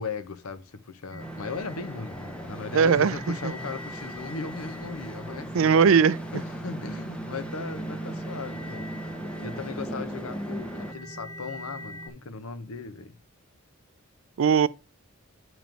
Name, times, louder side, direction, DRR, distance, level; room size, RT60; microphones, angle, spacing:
voice 1, 0.0-5.7 6.3-8.9 9.4-13.2, left 4 dB, 80° left, 0.8 m, -37 dB
sound 1, 1.1-12.1, right 2 dB, 35° right, 0.9 m, -41 dB
sound 2, 1.2-10.9, equal, 5° left, 0.5 m, -39 dB
voice 2, 2.7-3.5 5.5-6.2 14.4-14.7, right 6 dB, 65° right, 0.4 m, -20 dB
9.1 x 3.1 x 5.1 m
head